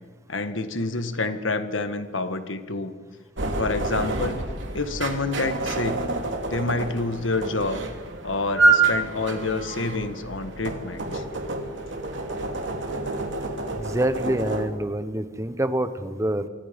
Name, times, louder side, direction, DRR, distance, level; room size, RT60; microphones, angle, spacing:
voice 1, 0.3-2.9 3.6-4.4 4.7-6.1 6.5-7.8 8.2-11.2, left 3 dB, 85° left, 9 dB, 1.6 m, -28 dB
sound 1, 3.4-14.7, right 3 dB, 70° right, 3.0 m, -27 dB
voice 2, 13.7-16.5, right 1 dB, 15° right, 11 dB, 1.2 m, -26 dB
27.0 x 24.5 x 5.3 m, 1.5 s
head